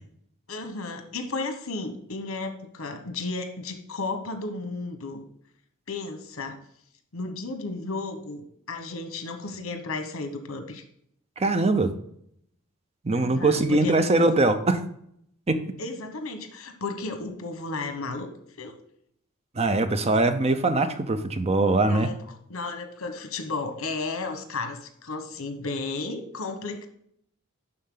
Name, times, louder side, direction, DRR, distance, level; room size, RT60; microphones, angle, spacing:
voice 1, 0.5-5.2 5.9-6.6 7.1-10.8 13.1-14.3 15.8-18.3 18.6-18.8 21.8-26.9, left 3 dB, 75° left, 7 dB, 1.1 m, -34 dB
voice 2, 11.4-11.9 13.0-14.8 15.5-15.6 19.6-22.1, right 2 dB, 30° right, 9 dB, 0.6 m, -22 dB
11.0 x 3.9 x 3.8 m, 0.70 s
head